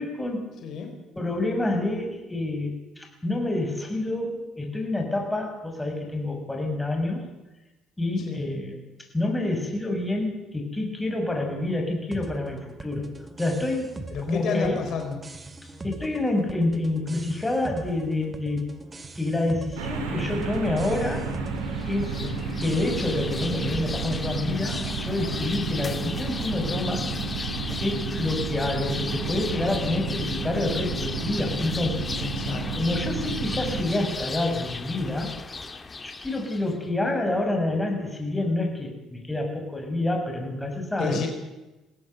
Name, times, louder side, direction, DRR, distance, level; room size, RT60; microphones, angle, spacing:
voice 1, 0.0-0.5 1.1-7.2 8.0-8.7 9.1-13.1 13.4-14.0 14.3-14.8 15.6-18.7 19.1-21.3 21.8-22.2 22.6-27.1 27.8-32.1 32.7-35.3 36.0-41.2, left 2 dB, 10° left, 3 dB, 6.6 m, -28 dB
voice 2, 0.6-1.0 8.2-8.4 14.1-15.2 22.2-22.4 32.2-32.7 41.0-41.3, left 6 dB, 65° left, 4 dB, 3.9 m, -31 dB
sound 1, 12.1-25.0, right 2 dB, 25° right, 2.5 m, -42 dB
sound 2, 19.8-33.8, right 4 dB, 90° right, 3.7 m, -31 dB
sound 3, 21.6-36.8, left 4 dB, 30° left, 1.9 m, -35 dB
20.5 x 16.5 x 8.0 m, 1.1 s
supercardioid pair, 65°, 0 cm